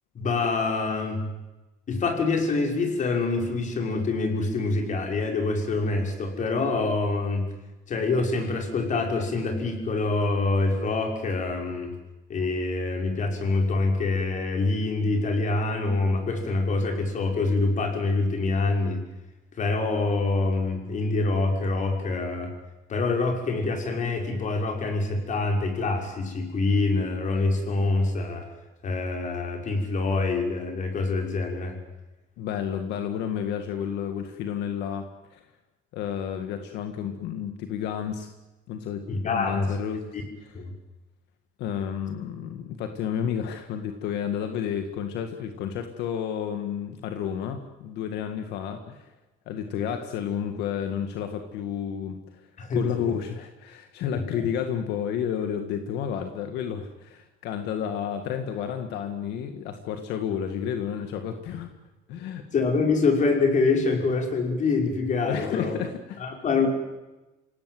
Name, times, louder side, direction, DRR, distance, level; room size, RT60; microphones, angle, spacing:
voice 1, 0.1-1.3 1.9-7.5 7.9-11.9 12.3-19.1 19.6-22.5 22.9-28.5 28.8-31.8 39.1-39.7 40.1-40.2 40.5-40.7 52.6-53.2 54.1-54.4 62.5-65.8 66.2-66.7, left 3 dB, 45° left, 4 dB, 5.7 m, -25 dB
voice 2, 32.4-35.4 35.9-38.3 38.7-40.2 41.6-49.1 49.5-52.4 52.7-61.7 62.1-62.4 65.2-66.2, left 8 dB, 85° left, 7 dB, 2.0 m, -31 dB
27.0 x 18.0 x 9.5 m, 1.1 s
cardioid pair, 110°, 17 cm